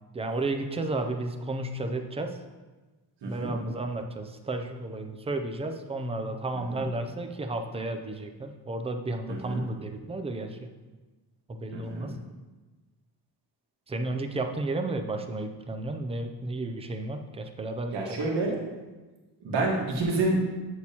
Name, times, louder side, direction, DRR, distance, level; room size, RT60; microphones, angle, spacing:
voice 1, 0.1-2.4 3.3-10.7 11.5-12.2 13.9-18.2, right 2 dB, 15° right, 5 dB, 0.4 m, -33 dB
voice 2, 3.2-3.5 6.7-6.9 9.3-9.6 11.7-12.1 17.9-18.5 19.4-20.4, right 2 dB, 90° right, -2 dB, 1.5 m, -28 dB
8.4 x 6.2 x 2.8 m, 1.2 s
wide cardioid pair, 180°, 41 cm